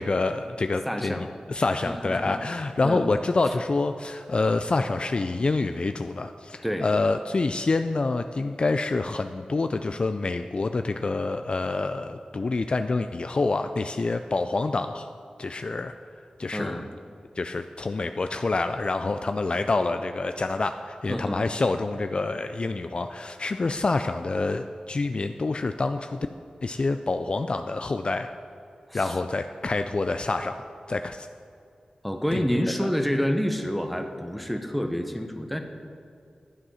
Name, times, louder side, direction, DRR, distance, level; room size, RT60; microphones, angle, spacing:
voice 1, 0.0-15.1 15.4-15.9 16.4-16.8 17.4-26.3 26.6-28.3 28.9-30.6 30.9-31.3 32.3-32.5 32.8-32.9, left 3 dB, 45° left, 8 dB, 0.4 m, -27 dB
voice 2, 0.8-1.3 1.8-2.4 2.8-3.1 6.6-6.9 16.5-16.8 21.1-21.5 28.9-29.2 32.0-35.6, equal, ahead, 5 dB, 1.0 m, -28 dB
11.5 x 8.0 x 5.6 m, 2.4 s
wide cardioid pair, 75°, 2 cm